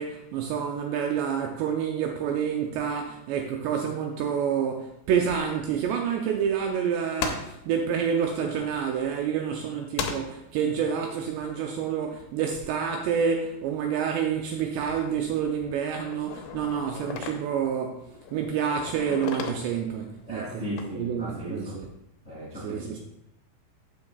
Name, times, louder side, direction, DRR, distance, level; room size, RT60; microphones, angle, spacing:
voice 1, 0.0-20.6 21.0-21.9 22.5-23.0, right 7 dB, 80° right, 2 dB, 2.5 m, -28 dB
sound 1, 5.4-6.8 7.2-9.6 10.0-12.9 13.3-14.0 14.3-21.5, left 6 dB, 80° left, 3.0 m, -39 dB
voice 2, 20.3-21.8 22.2-23.0, equal, 60° left, -6 dB, 0.7 m, -36 dB
12.5 x 8.1 x 2.4 m, 0.82 s
omnidirectional pair, 5.6 m